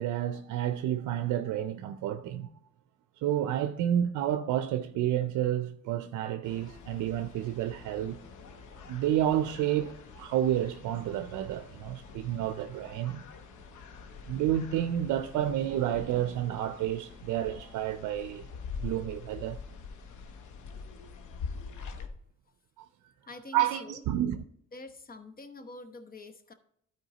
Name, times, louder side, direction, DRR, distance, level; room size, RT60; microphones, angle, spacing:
voice 1, 0.0-2.5 3.2-8.2 8.9-13.3 14.3-18.5 18.8-19.6 22.8-22.9 23.5-24.4, right 11 dB, 80° right, 0.5 m, -30 dB
sound 1, 6.4-22.1, left 5 dB, 75° left, 0.9 m, -45 dB
voice 2, 23.3-24.0 24.7-26.5, left 2 dB, 30° left, 0.9 m, -46 dB
12.0 x 4.5 x 4.0 m
cardioid pair, 90°, 30 cm